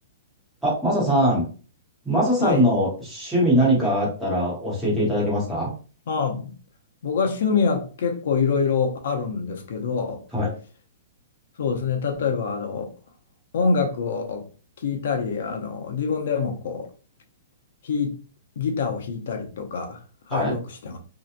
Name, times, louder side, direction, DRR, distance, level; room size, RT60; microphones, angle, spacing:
voice 1, 0.6-1.5 2.0-5.7 10.3-10.5 20.3-20.5, equal, 5° right, 1.0 m, -22 dB
voice 2, 6.1-6.5 7.0-10.2 11.6-12.9 13.5-14.5 14.8-16.9 17.8-18.2 18.6-20.0 20.3-21.0, left 5 dB, 60° left, 0.5 m, -25 dB
2.8 x 2.1 x 2.4 m
hypercardioid pair, 175°, 0 cm